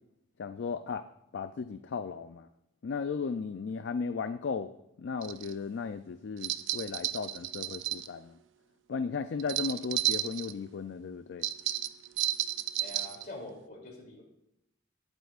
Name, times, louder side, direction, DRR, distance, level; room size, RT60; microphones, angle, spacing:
voice 1, 0.4-1.1 1.3-2.5 2.8-4.7 5.0-8.4 8.9-11.5, left 5 dB, 65° left, 10 dB, 0.4 m, -35 dB
sound 1, 5.2-5.5 6.4-8.1 9.4-10.5 11.4-13.2, right 14 dB, 85° right, 0.5 m, -32 dB
voice 2, 12.8-14.2, left 1 dB, 50° left, 0 dB, 2.9 m, -45 dB
17.5 x 8.0 x 2.4 m, 0.85 s
head